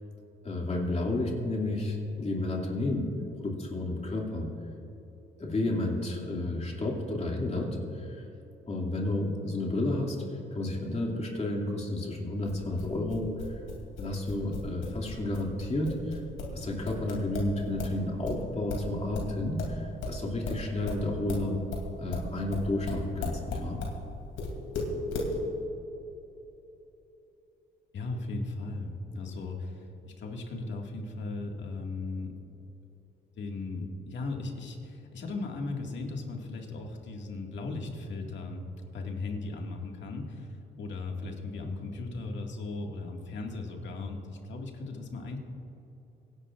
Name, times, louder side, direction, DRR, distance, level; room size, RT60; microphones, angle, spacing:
voice 1, 0.4-3.1 3.4-4.5 5.4-8.3 8.7-10.2 10.5-13.3 14.0-16.2 16.5-21.6 22.0-23.8, left 2 dB, 35° left, -1 dB, 2.5 m, -31 dB
sound 1, 12.4-18.0 18.2-24.0 24.4-25.3, left 3 dB, 85° left, 2.8 m, -36 dB
voice 2, 27.9-32.3 33.4-38.6 38.9-45.4, left 3 dB, 65° left, 1 dB, 2.0 m, -37 dB
24.5 x 11.0 x 2.5 m, 3.0 s
cardioid pair, 90°, 20 cm